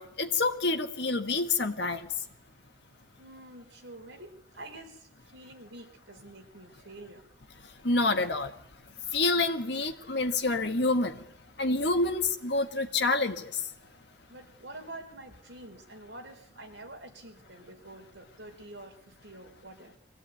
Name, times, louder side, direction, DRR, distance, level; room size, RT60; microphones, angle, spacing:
voice 1, 0.0-2.1 7.8-8.6 9.1-11.3 11.6-13.7, left 3 dB, 60° left, 1.6 m, -28 dB
voice 2, 3.2-7.2 14.3-20.0, right 1 dB, 70° right, 4.3 m, -47 dB
23.0 x 16.0 x 9.4 m
head